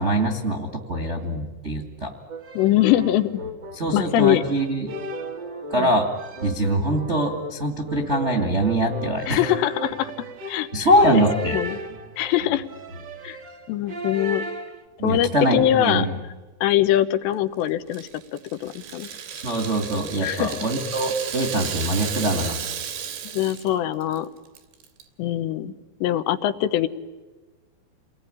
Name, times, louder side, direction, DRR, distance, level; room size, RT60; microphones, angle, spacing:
voice 1, 0.0-2.1 3.7-5.0 5.7-6.1 6.4-9.4 10.7-11.6 15.0-16.2 19.4-22.6, right 1 dB, 25° right, 3 dB, 1.4 m, -23 dB
sound 1, 2.3-14.8, right 1 dB, 60° right, 1.1 m, -35 dB
voice 2, 2.5-3.4 3.9-4.4 5.8-5.9 9.3-10.1 10.5-10.7 11.1-11.2 11.5-11.8 12.2-12.6 13.2-13.4 13.7-14.4 15.0-16.1 16.6-19.1 20.2-20.5 23.3-24.3 25.2-25.7 26.0-26.9, left 13 dB, 80° left, 12 dB, 3.2 m, -22 dB
Rattle (instrument), 17.9-23.7 24.0-24.2 24.6-25.0, right 8 dB, 85° right, 4.8 m, -34 dB
29.0 x 20.0 x 10.0 m, 1.3 s
omnidirectional pair, 5.1 m